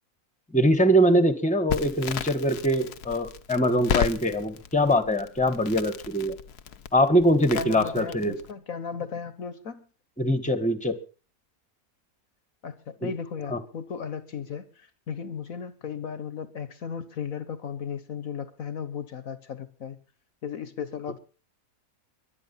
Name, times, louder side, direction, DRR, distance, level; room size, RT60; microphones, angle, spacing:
voice 1, 0.5-6.4 6.9-8.4 10.2-10.9 13.0-13.1 13.5-13.6, equal, 5° left, 1.6 m, -23 dB
Crackle, 1.7-8.5, left 8 dB, 80° left, 1.5 m, -34 dB
voice 2, 7.5-9.8 12.6-20.0 20.4-21.2, left 6 dB, 60° left, 1.5 m, -35 dB
22.5 x 9.8 x 5.7 m
omnidirectional pair, 1.7 m